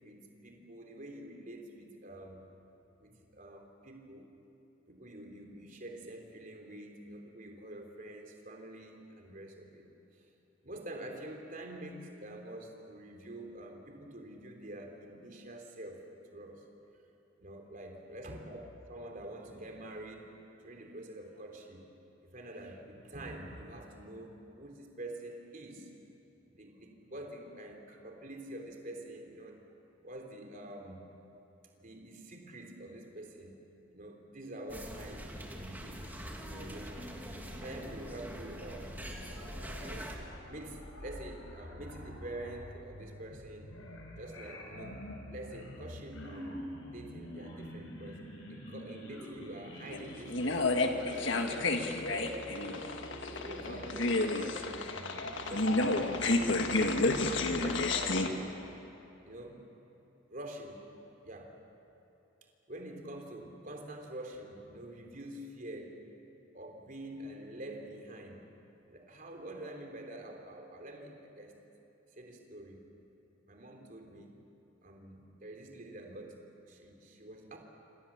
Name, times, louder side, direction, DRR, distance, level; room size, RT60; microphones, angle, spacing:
voice 1, 0.0-2.4 3.0-4.3 4.9-9.9 10.1-10.3 10.6-16.0 16.3-16.6 17.4-18.6 18.9-20.3 20.6-21.9 22.2-25.9 26.5-29.6 30.0-31.0 31.8-33.6 33.9-36.1 36.4-37.3 37.6-39.0 39.8-40.2 40.4-43.8 44.2-45.0 45.3-46.6 46.9-52.8 53.3-56.4 57.2-58.5 59.2-59.6 60.3-60.9 61.2-61.6 62.7-66.0 66.5-68.5 68.9-71.6 72.1-72.9 73.5-74.4 74.8-76.4 76.7-77.6, right 1 dB, 40° right, 2 dB, 3.4 m, -46 dB
sound 1, 34.7-40.2, equal, 10° right, 2.5 m, -44 dB
sound 2, 38.6-56.4, left 1 dB, 90° left, 5.4 m, -46 dB
sound 3, 49.9-58.3, left 2 dB, 60° left, 1.8 m, -30 dB
27.5 x 26.5 x 7.3 m, 3.0 s
head